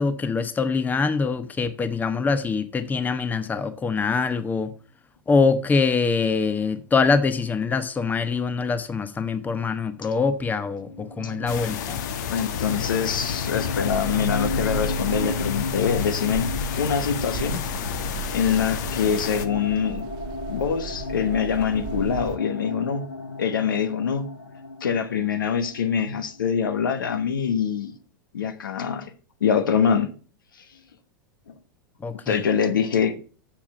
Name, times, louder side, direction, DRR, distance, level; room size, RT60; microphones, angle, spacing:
voice 1, 0.0-4.7 5.3-12.0 32.0-32.4, left 4 dB, 15° left, 0.9 m, -24 dB
sound 1, 10.8-26.4, left 3 dB, 90° left, 1.1 m, -34 dB
sound 2, 11.5-19.5, left 8 dB, 60° left, 1.1 m, -31 dB
voice 2, 12.3-16.5 16.8-17.6 18.3-20.1 20.5-23.1 23.4-24.3 24.8-27.9 28.3-29.1 29.4-30.1 31.5-31.6 32.3-33.2, left 7 dB, 75° left, 1.1 m, -24 dB
sound 3, 13.9-22.4, right 7 dB, 40° right, 0.7 m, -36 dB
7.3 x 7.2 x 5.5 m
figure-of-eight pair, 95°, 11 cm